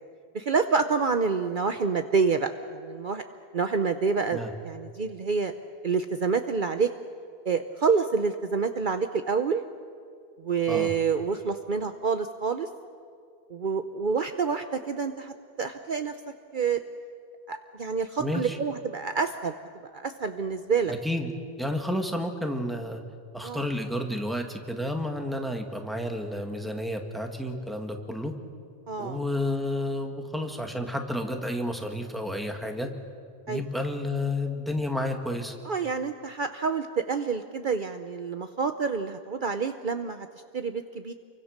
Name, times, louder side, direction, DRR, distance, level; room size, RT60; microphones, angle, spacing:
voice 1, 0.3-3.2 3.5-5.5 5.8-6.9 7.5-9.6 10.4-12.7 13.5-16.2 16.5-16.8 17.5-19.5 19.8-20.9 23.4-23.6 28.9-29.2 33.5-33.6 35.6-40.3 40.5-41.1, right 5 dB, 50° right, 8 dB, 1.0 m, -27 dB
voice 2, 18.2-18.6 20.9-21.3 21.6-23.0 23.3-28.3 29.0-32.9 33.5-35.6, left 1 dB, ahead, 3 dB, 2.0 m, -31 dB
29.0 x 23.5 x 6.6 m, 2.2 s
omnidirectional pair, 1.1 m